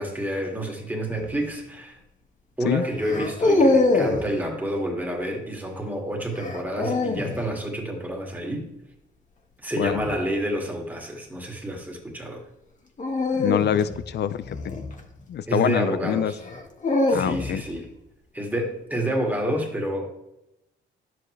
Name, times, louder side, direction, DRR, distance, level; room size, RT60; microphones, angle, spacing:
voice 1, 0.0-2.0 2.6-8.7 9.6-12.4 15.5-16.4 17.1-17.9 18.3-20.1, right 1 dB, 10° right, 0 dB, 2.2 m, -29 dB
sound 1, 1.2-1.5 3.0-4.3 6.4-7.4 9.8-10.2 13.0-15.4 16.4-17.7, left 2 dB, 40° left, 1.5 m, -24 dB
voice 2, 13.3-14.7 15.3-16.3 17.1-17.6, left 9 dB, 55° left, 15 dB, 0.6 m, -25 dB
11.0 x 7.8 x 3.3 m, 0.90 s
cardioid pair, 90°, 20 cm